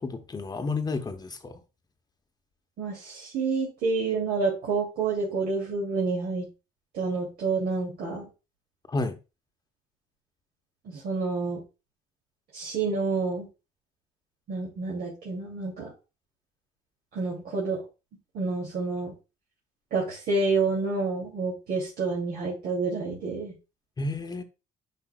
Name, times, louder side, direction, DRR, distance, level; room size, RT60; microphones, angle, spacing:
voice 1, 0.0-1.6 8.9-9.2 24.0-24.4, left 3 dB, 25° left, 0.9 m, -31 dB
voice 2, 2.8-6.5 6.9-8.2 10.8-11.6 12.5-13.5 14.5-15.9 17.1-17.8 18.3-19.1 19.9-23.5, right 4 dB, 70° right, 2.6 m, -28 dB
10.0 x 5.5 x 2.3 m
cardioid pair, 110°, 17 cm